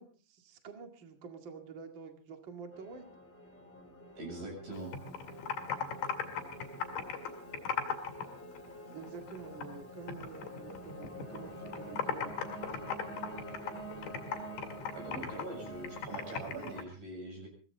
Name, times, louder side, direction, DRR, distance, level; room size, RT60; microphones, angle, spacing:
voice 1, 0.0-3.1 8.9-12.3 12.6-12.8, right 5 dB, 70° right, 5 dB, 1.1 m, -48 dB
sound 1, 2.7-16.8, right 1 dB, 5° left, 1.4 m, -47 dB
voice 2, 4.2-4.9 14.9-17.5, right 2 dB, 45° right, 2 dB, 8.7 m, -43 dB
Computer keyboard, 4.7-8.3 8.5-9.8 10.1-11.4 11.7-16.8, left 7 dB, 55° left, 3.1 m, -37 dB
22.5 x 17.0 x 3.8 m, 0.38 s
omnidirectional pair, 5.9 m